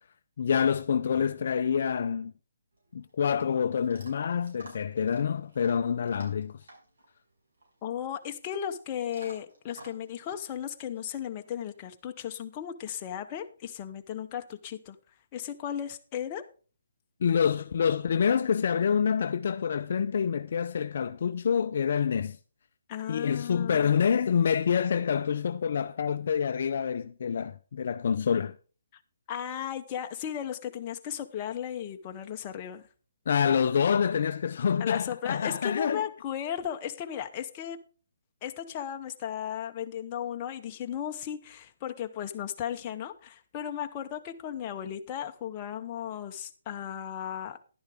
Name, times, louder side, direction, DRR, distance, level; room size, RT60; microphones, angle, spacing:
voice 1, 0.4-2.3 2.9-6.6 17.2-22.4 23.1-28.5 33.3-36.0, left 7 dB, 45° left, 0.4 m, -27 dB
Chewing mastication / Dog, 2.7-11.8, right 1 dB, 70° right, 5.2 m, -54 dB
voice 2, 7.8-15.0 15.3-16.5 22.9-24.0 28.9-29.0 29.3-32.8 34.8-37.8 38.4-47.6, left 9 dB, 20° left, 0.8 m, -35 dB
11.0 x 10.5 x 3.5 m
hypercardioid pair, 170°, 0 cm